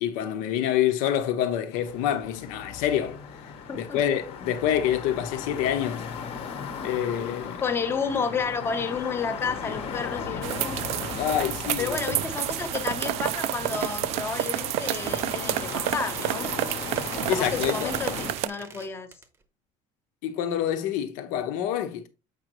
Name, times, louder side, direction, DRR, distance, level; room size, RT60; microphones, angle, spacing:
voice 1, 0.0-3.2 3.7-6.1 6.8-7.6 11.1-12.2 17.0-17.9 20.2-22.0, left 10 dB, 80° left, 1.0 m, -27 dB
sound 1, 1.7-18.3, left 6 dB, 45° left, 1.0 m, -37 dB
voice 2, 3.7-4.0 7.6-10.8 11.8-16.5 17.3-19.1, left 5 dB, 20° left, 0.8 m, -31 dB
sound 2, 10.4-18.5, right 14 dB, 55° right, 0.4 m, -30 dB
Squeak, 14.2-19.3, right 4 dB, 15° right, 0.8 m, -45 dB
7.1 x 5.2 x 3.0 m
cardioid pair, 175°, 13 cm